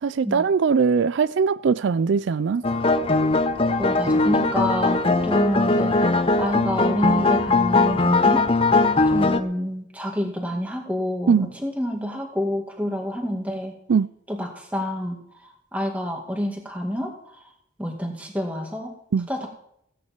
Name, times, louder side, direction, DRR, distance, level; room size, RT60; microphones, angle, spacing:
voice 1, 0.0-2.6 11.3-11.5 13.9-14.1 19.1-19.3, right 5 dB, 70° right, 0.4 m, -20 dB
sound 1, 2.6-9.4, left 3 dB, 30° left, 0.7 m, -20 dB
voice 2, 3.8-8.5 9.1-13.8 14.3-15.2 15.7-17.1 17.8-18.9 19.3-19.5, equal, 5° right, 2.2 m, -28 dB
16.5 x 9.5 x 4.6 m
head